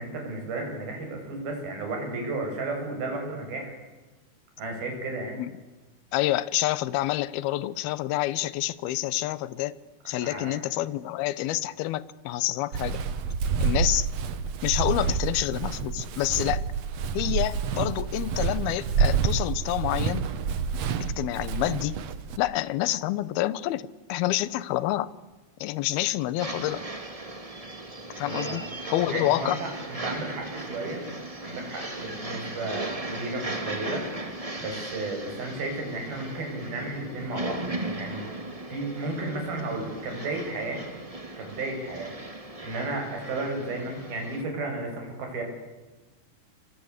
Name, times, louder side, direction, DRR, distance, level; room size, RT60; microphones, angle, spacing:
voice 1, 0.0-3.8 4.6-5.4 10.2-10.6 28.2-28.6 29.1-31.0 31.4-34.1 34.6-37.6 38.0-38.2 38.7-40.8 41.4-42.1 42.6-45.4, right 2 dB, 55° right, 3 dB, 8.8 m, -33 dB
voice 2, 6.1-9.8 10.1-13.0 13.6-14.1 14.6-16.6 17.1-20.3 21.2-22.0 22.4-25.1 25.6-26.8 28.2-28.6 28.9-29.6, left 15 dB, 70° left, 18 dB, 2.6 m, -28 dB
Walk footsteps, 12.7-22.4, right 6 dB, 85° right, 1.4 m, -28 dB
sound 1, 26.4-44.4, right 2 dB, 20° right, 0.9 m, -37 dB
29.5 x 24.5 x 8.2 m, 1.2 s
omnidirectional pair, 5.2 m